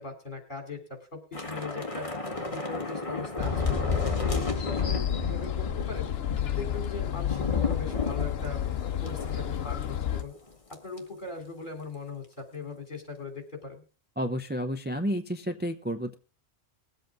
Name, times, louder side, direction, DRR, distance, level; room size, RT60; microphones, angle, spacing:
voice 1, 0.0-2.1 2.5-6.1 6.6-10.4 10.7-13.9, left 3 dB, 50° left, 4 dB, 3.5 m, -40 dB
Thunder / Rain, 1.3-9.9 10.2-10.4 10.7-11.0, left 4 dB, 30° left, 1.7 m, -33 dB
sound 1, 3.4-10.2, left 10 dB, 70° left, 1.0 m, -31 dB
voice 2, 14.2-16.2, equal, 10° right, 7 dB, 0.6 m, -31 dB
20.5 x 8.1 x 3.6 m, 0.34 s
omnidirectional pair, 1.1 m